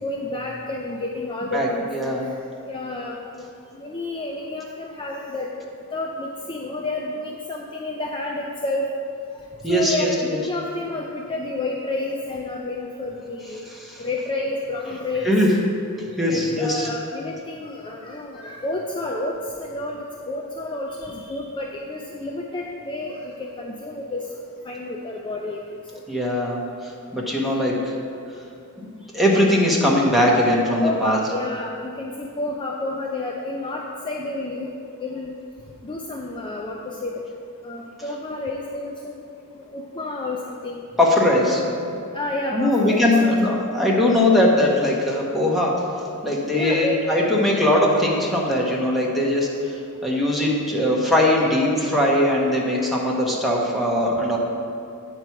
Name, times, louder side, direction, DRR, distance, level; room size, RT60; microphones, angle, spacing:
voice 1, 0.0-1.8 2.2-2.3 2.7-3.5 3.7-5.5 5.9-8.9 9.7-13.6 14.0-15.3 16.3-24.2 24.6-25.6 25.9-26.0 30.8-34.7 35.0-35.3 35.8-37.2 37.6-39.2 39.7-40.8 41.6-41.7 42.1-43.5 46.5-47.2, left 2 dB, 20° left, -1 dB, 0.4 m, -30 dB
voice 2, 1.5-2.3 9.6-10.4 13.8-14.0 15.2-15.5 16.2-16.9 26.1-26.6 27.1-27.9 28.8-28.9 29.1-31.2 41.0-42.0 42.5-45.8 46.2-49.5 50.0-54.4, left 1 dB, ahead, -4 dB, 1.2 m, -20 dB
8.7 x 4.6 x 5.7 m, 2.5 s
head